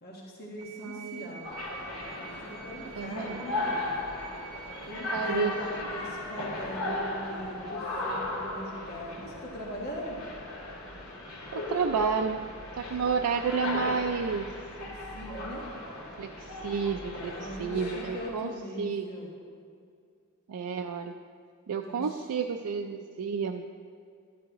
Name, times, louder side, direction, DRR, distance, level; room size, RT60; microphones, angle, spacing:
voice 1, 0.0-1.5 2.2-3.8 4.8-5.5 5.8-10.2 14.7-15.6 17.2-19.3 21.8-22.2, equal, 45° left, -3 dB, 1.5 m, -41 dB
sound 1, 0.6-5.6, right 8 dB, 65° right, 2.4 m, -48 dB
voice 2, 0.8-1.4 2.9-3.4 5.1-5.5 11.5-12.4 12.8-14.5 16.2-18.5 18.8-19.1 20.5-21.1 21.7-23.6, right 5 dB, 85° right, 4 dB, 0.4 m, -30 dB
sound 2, 1.4-18.3, left 2 dB, 85° left, 2.1 m, -36 dB
12.0 x 11.5 x 3.0 m, 2.3 s
head